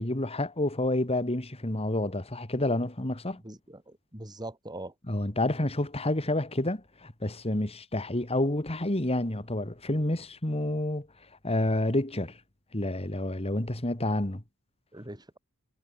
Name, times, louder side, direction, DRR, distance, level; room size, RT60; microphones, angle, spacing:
voice 1, 0.0-3.4 5.1-11.1 11.4-12.4 12.7-14.4, left 1 dB, 25° left, 2.5 m, -29 dB
voice 2, 3.4-4.9 14.9-15.4, right 1 dB, 20° right, 7.5 m, -42 dB
head